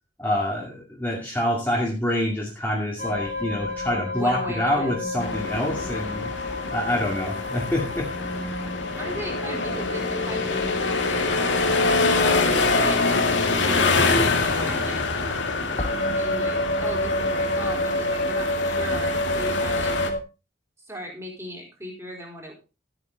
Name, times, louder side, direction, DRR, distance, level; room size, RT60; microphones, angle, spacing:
voice 1, 0.2-6.3 6.7-8.1, left 1 dB, 10° left, -3 dB, 2.3 m, -26 dB
sound 1, 3.0-20.2, left 1 dB, 40° left, 3.0 m, -30 dB
voice 2, 4.1-4.9 9.0-12.2 12.7-15.0 16.2-19.9 20.9-22.5, equal, 15° right, 0 dB, 4.2 m, -38 dB
sound 2, 5.2-20.1, left 3 dB, 75° left, 2.1 m, -25 dB
13.5 x 9.0 x 4.0 m, 0.31 s
head